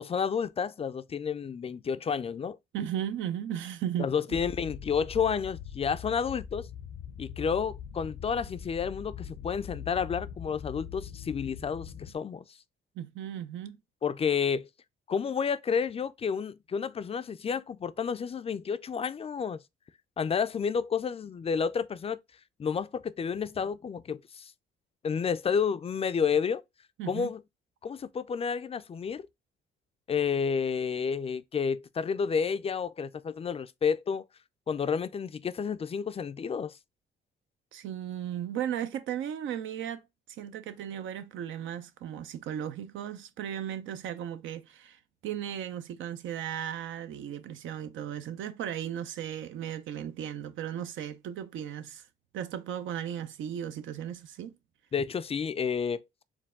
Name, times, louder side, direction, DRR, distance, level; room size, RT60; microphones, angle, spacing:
voice 1, 0.0-2.6 4.0-6.7 7.2-12.4 14.0-14.7 15.1-19.6 20.2-22.2 22.6-24.5 25.0-26.6 27.1-27.4 27.8-29.3 30.1-34.2 34.7-36.8 54.9-56.0, left 6 dB, 30° left, 0.4 m, -30 dB
voice 2, 2.7-4.1 13.0-13.8 27.0-27.3 37.7-40.0 40.4-52.0 52.3-54.6, right 10 dB, 75° right, 0.6 m, -36 dB
sound 1, 4.3-12.1, left 8 dB, 70° left, 0.6 m, -42 dB
4.5 x 2.2 x 3.5 m
cardioid pair, 90°, 20 cm